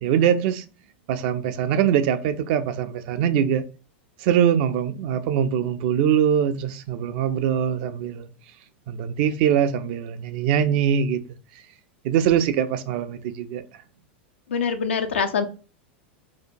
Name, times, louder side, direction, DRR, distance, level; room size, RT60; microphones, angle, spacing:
voice 1, 0.0-0.6 1.1-3.6 4.2-8.3 8.9-11.2 12.0-13.6, right 9 dB, 55° right, 0.4 m, -22 dB
voice 2, 14.5-15.4, left 6 dB, 85° left, 0.4 m, -24 dB
2.7 x 2.1 x 2.5 m
hypercardioid pair, 100°, 6 cm